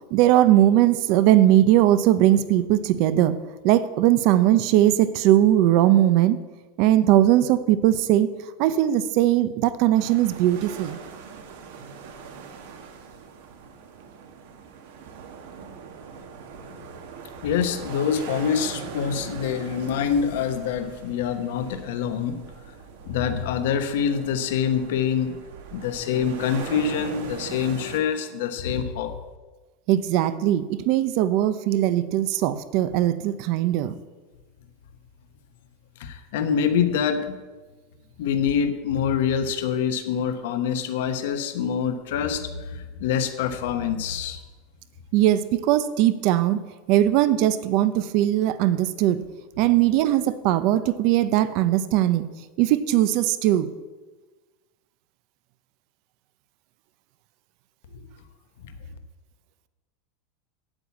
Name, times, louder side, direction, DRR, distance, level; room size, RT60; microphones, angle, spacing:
voice 1, 0.0-3.3 3.6-6.4 6.8-8.3 8.6-11.0 29.9-33.9 45.1-46.6 46.9-49.2 49.6-52.2 52.6-53.7, right 13 dB, 40° right, 14 dB, 0.7 m, -20 dB
sound 1, 10.0-28.0, right 5 dB, 65° right, 1.7 m, -40 dB
voice 2, 17.4-22.4 23.1-25.4 25.7-29.1 36.0-37.4 38.2-44.4 58.6-58.7, left 7 dB, 65° left, 8 dB, 1.2 m, -25 dB
9.0 x 8.9 x 8.3 m, 1.2 s
supercardioid pair, 175°, 0 cm